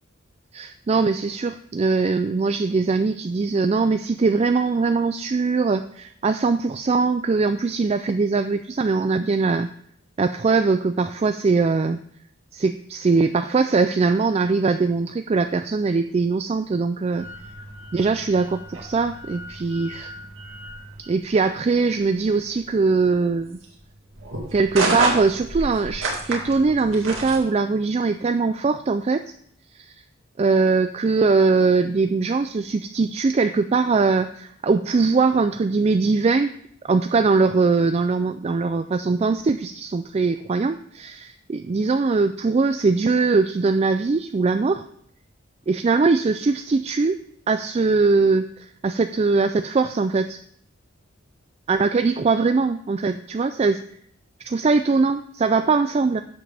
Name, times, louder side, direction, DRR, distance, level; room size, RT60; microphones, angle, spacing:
voice 1, 0.5-9.7 10.2-12.0 12.5-17.3 17.9-20.1 21.1-23.6 24.5-29.2 29.8-29.9 30.4-36.5 36.8-44.8 45.7-47.2 47.5-50.4 51.7-53.8 54.4-56.2, right 4 dB, 30° right, 9 dB, 0.3 m, -21 dB
sound 1, 17.2-27.4, right 2 dB, 70° right, 2.2 m, -31 dB
12.0 x 7.5 x 3.4 m, 0.66 s
head